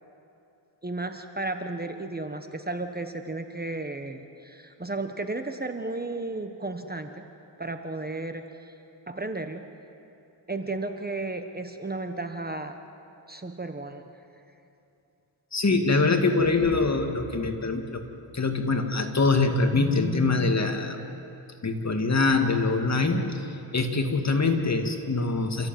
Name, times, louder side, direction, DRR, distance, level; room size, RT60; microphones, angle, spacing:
voice 1, 0.8-7.1 7.6-8.4 9.1-9.7 10.5-12.7 13.3-14.0, right 2 dB, 20° right, 7 dB, 1.3 m, -33 dB
voice 2, 15.5-18.0 18.3-21.0 21.6-25.7, left 3 dB, 35° left, 4 dB, 2.4 m, -24 dB
29.0 x 15.0 x 9.2 m, 2.8 s
cardioid pair, 85°, 45 cm